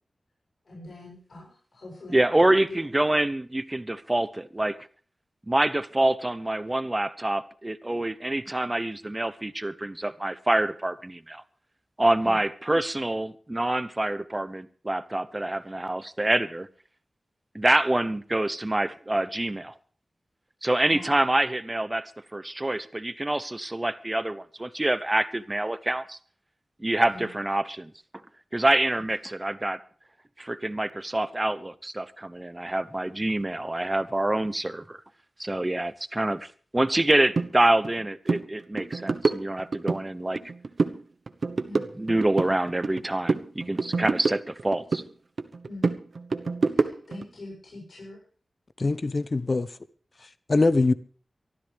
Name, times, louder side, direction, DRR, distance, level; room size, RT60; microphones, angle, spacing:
voice 1, 0.6-2.6 12.2-12.4 20.9-21.1 27.1-27.3 41.6-41.8 45.6-45.8 46.7-48.2, left 2 dB, 75° left, 7.9 m, -43 dB
voice 2, 2.1-4.8 5.5-11.4 12.0-16.7 17.5-19.7 20.6-26.2 26.8-27.9 28.5-29.8 30.4-35.0 35.4-40.4 42.0-45.0, right 1 dB, 20° right, 0.9 m, -26 dB
sound 1, 37.4-37.5 37.8-38.0 38.3-38.4 38.8-40.0 40.4-41.0 41.3-43.0 43.3-45.1 45.4-47.2, right 4 dB, 65° right, 1.1 m, -27 dB
voice 3, 48.8-49.7 50.5-50.9, left 3 dB, 45° left, 0.9 m, -22 dB
24.0 x 13.5 x 3.5 m
wide cardioid pair, 90°, 0 cm